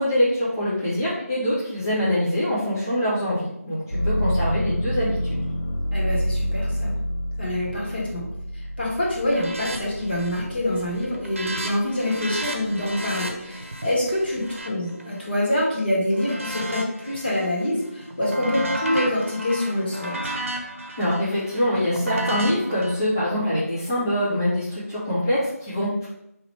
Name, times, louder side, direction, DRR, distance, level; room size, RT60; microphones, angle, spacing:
voice 1, 0.0-5.4 21.0-26.1, equal, 10° left, -11 dB, 0.5 m, -24 dB
sound 1, 3.9-11.7 12.2-13.0, equal, 85° left, 1.1 m, -28 dB
voice 2, 5.9-6.9 7.4-8.2 8.8-20.3, left 1 dB, 40° left, -5 dB, 1.4 m, -26 dB
sound 2, 9.3-9.8 10.1-10.5 10.8-15.6 16.1-17.5 17.8-22.9, right 1 dB, 55° right, 0.8 m, -33 dB
4.6 x 3.0 x 3.1 m, 0.84 s
figure-of-eight pair, 175°, 8 cm